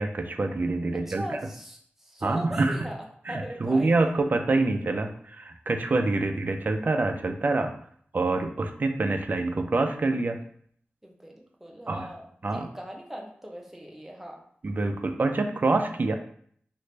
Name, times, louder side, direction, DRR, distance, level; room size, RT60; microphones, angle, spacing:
voice 1, 0.0-1.4 2.2-2.8 3.3-7.7 8.1-10.4 11.9-12.1 12.4-12.7 14.6-16.1, right 3 dB, 50° right, 5 dB, 0.4 m, -26 dB
voice 2, 0.9-3.0 3.3-4.1 11.0-12.3 12.5-14.4, equal, 5° right, 0 dB, 0.6 m, -39 dB
3.1 x 2.4 x 3.2 m, 0.62 s
wide cardioid pair, 95°, 4 cm